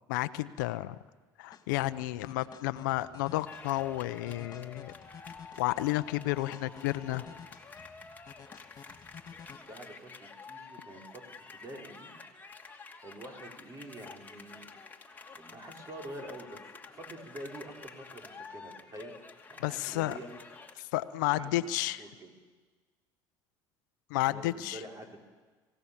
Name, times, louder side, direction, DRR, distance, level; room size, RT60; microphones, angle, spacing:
voice 1, 0.1-1.0 1.4-4.9 5.6-7.2 19.6-20.2 20.9-22.0 24.1-24.8, left 17 dB, 85° left, 15 dB, 0.7 m, -31 dB
sound 1, 1.5-9.6, left 7 dB, 40° left, 2.5 m, -52 dB
sound 2, 3.5-20.7, left 4 dB, 15° left, 2.6 m, -49 dB
voice 2, 6.8-7.2 9.5-12.2 13.0-14.7 15.4-19.1 19.5-20.3 21.3-22.3 24.3-25.2, right 1 dB, 35° right, 1 dB, 5.5 m, -47 dB
27.0 x 17.0 x 7.3 m, 1.4 s
supercardioid pair, 80°, 10 cm